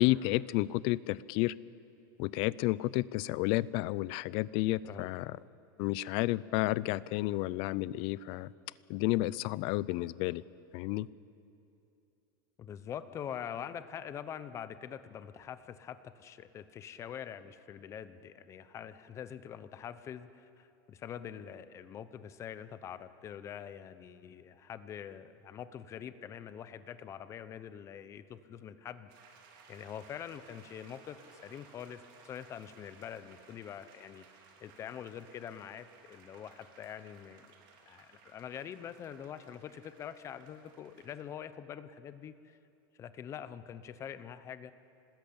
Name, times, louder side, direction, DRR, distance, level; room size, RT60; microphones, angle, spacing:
voice 1, 0.0-1.5 2.2-5.3 5.8-8.5 8.9-10.4 10.7-11.1, left 18 dB, 45° left, 20 dB, 0.5 m, -31 dB
voice 2, 12.6-29.1 29.7-34.3 34.6-37.5 37.9-42.6 43.0-44.7, left 9 dB, 25° left, 13 dB, 0.8 m, -44 dB
sound 1, 29.1-41.2, right 5 dB, 60° right, 3.8 m, -60 dB
27.0 x 20.0 x 8.7 m, 2.7 s
supercardioid pair, 165°, 12 cm